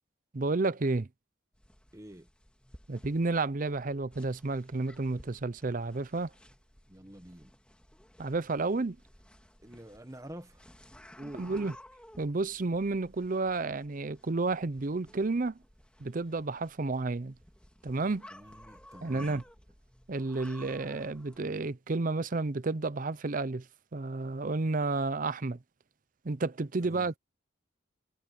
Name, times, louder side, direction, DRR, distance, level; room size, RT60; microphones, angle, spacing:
voice 1, 0.3-1.1 2.9-6.3 8.2-9.0 11.4-11.7 12.2-15.6 16.0-17.3 17.8-18.3 19.0-19.4 20.1-23.6 23.9-25.6 26.2-27.2, right 3 dB, 45° right, 0.6 m, -31 dB
sound 1, 1.5-21.4, left 1 dB, 5° left, 2.2 m, -56 dB
voice 2, 1.9-2.3 6.9-7.5 9.6-10.7 11.2-11.5 18.3-19.3 26.8-27.1, right 1 dB, 15° right, 1.2 m, -47 dB
head